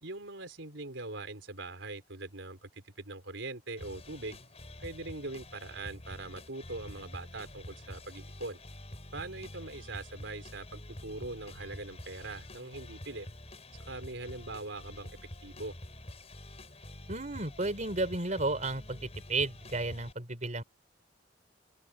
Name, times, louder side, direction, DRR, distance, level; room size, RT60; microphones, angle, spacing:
voice 1, 0.0-4.4 4.8-8.6 9.1-13.3 13.7-15.1 15.4-15.7, right 2 dB, 90° right, 4.1 m, -42 dB
sound 1, 3.8-20.1, left 1 dB, 35° left, 5.5 m, -47 dB
voice 2, 17.1-20.6, right 2 dB, 40° right, 4.3 m, -33 dB
head